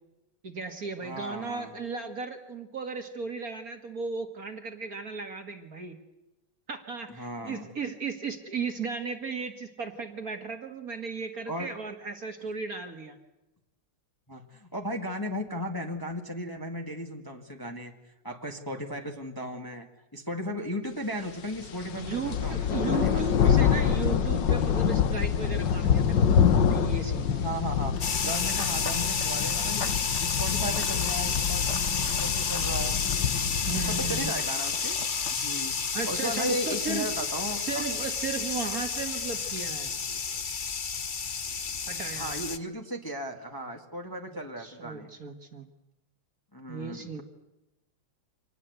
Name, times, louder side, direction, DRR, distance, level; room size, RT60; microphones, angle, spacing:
voice 1, 0.4-6.0 6.7-13.2 22.0-27.4 33.7-34.4 35.9-37.1 37.5-39.9 41.9-42.3 44.6-45.7 46.7-47.2, right 5 dB, 45° right, 6 dB, 2.0 m, -35 dB
voice 2, 1.0-1.7 7.1-7.7 11.5-11.7 14.3-17.9 18.2-19.9 20.1-23.9 27.4-27.9 28.2-33.0 33.7-35.0 35.3-37.8 42.1-45.1 46.5-47.2, equal, 10° left, 3 dB, 1.8 m, -36 dB
sound 1, 21.6-34.3, left 8 dB, 60° left, 1.7 m, -26 dB
sound 2, 28.0-42.6, left 6 dB, 90° left, 0.4 m, -30 dB
Run / Bird vocalization bird call bird song, 28.0-35.4, left 5 dB, 40° left, 1.4 m, -44 dB
26.0 x 19.5 x 8.2 m, 0.97 s
omnidirectional pair, 2.4 m